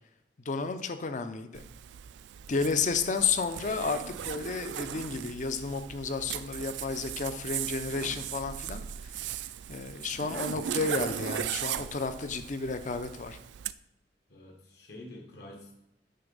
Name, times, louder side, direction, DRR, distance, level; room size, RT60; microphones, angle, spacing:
voice 1, 0.5-1.6 2.5-9.4 9.7-13.4, left 4 dB, 45° left, 9 dB, 0.6 m, -32 dB
Zipper (clothing), 1.5-13.7, right 10 dB, 70° right, 0.3 m, -38 dB
voice 2, 14.3-15.7, left 1 dB, 65° left, -1 dB, 1.4 m, -47 dB
9.3 x 3.9 x 5.4 m, 0.89 s
head